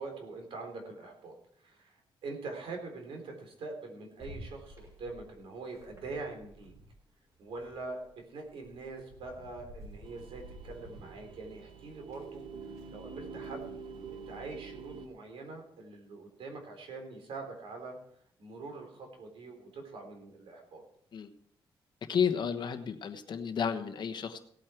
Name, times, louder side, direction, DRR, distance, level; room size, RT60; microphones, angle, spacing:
voice 1, 0.0-1.3 1.6-6.7 7.4-12.5 12.9-13.6 14.1-18.0 18.4-20.8, right 3 dB, 85° right, 4 dB, 3.7 m, -44 dB
sound 1, 4.2-7.0 7.3-14.5, right 1 dB, 40° right, 6.6 m, -53 dB
sound 2, 10.0-15.1, right 5 dB, 60° right, 1.0 m, -46 dB
voice 2, 22.1-24.4, left 7 dB, 55° left, 6 dB, 1.2 m, -32 dB
17.5 x 8.5 x 4.6 m, 0.66 s
wide cardioid pair, 130°, 9 cm